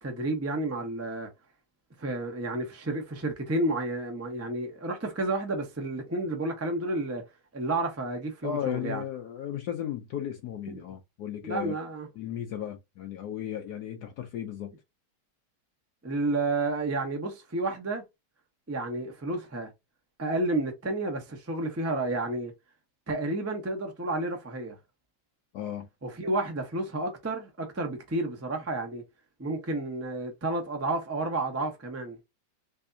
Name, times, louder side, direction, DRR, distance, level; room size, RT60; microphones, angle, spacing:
voice 1, 0.0-1.3 2.0-7.2 7.5-9.0 10.7-10.8 11.4-12.1 16.0-18.0 18.7-19.7 20.2-22.5 23.1-24.8 26.0-29.0 29.4-32.2, right 2 dB, 20° right, 0.4 m, -31 dB
voice 2, 8.4-11.7 12.2-14.7 25.5-25.9, left 10 dB, 75° left, 0.9 m, -35 dB
3.5 x 3.4 x 2.6 m
omnidirectional pair, 2.2 m